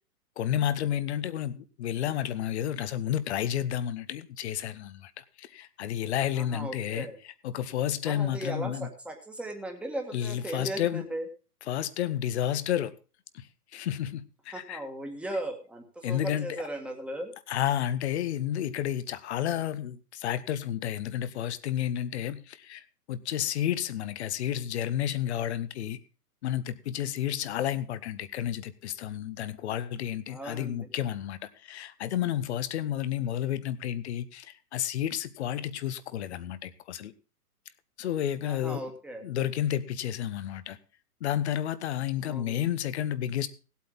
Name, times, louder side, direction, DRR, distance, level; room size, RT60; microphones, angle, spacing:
voice 1, 0.4-7.1 7.4-8.9 10.1-11.0 11.7-12.9 13.3-13.5 13.7-14.8 16.0-16.6 17.5-26.0 26.4-37.1 38.0-38.9 39.2-40.8 41.2-43.5, left 11 dB, 45° left, 1.0 m, -31 dB
voice 2, 6.3-7.2 8.0-11.3 14.5-17.3 30.3-30.9 38.4-39.2 42.2-42.7, right 1 dB, ahead, 1.7 m, -37 dB
17.0 x 8.5 x 3.9 m
hypercardioid pair, 135°, 47 cm